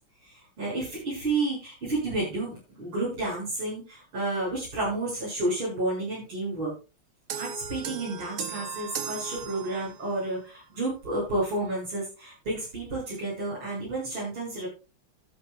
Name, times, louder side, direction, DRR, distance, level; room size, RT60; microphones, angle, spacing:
voice 1, 0.2-6.7 7.4-14.7, right 2 dB, 75° right, -8 dB, 8.6 m, -31 dB
sound 1, 7.3-10.2, right 8 dB, 60° right, 1.1 m, -37 dB
15.5 x 12.0 x 2.5 m, 0.31 s
omnidirectional pair, 2.4 m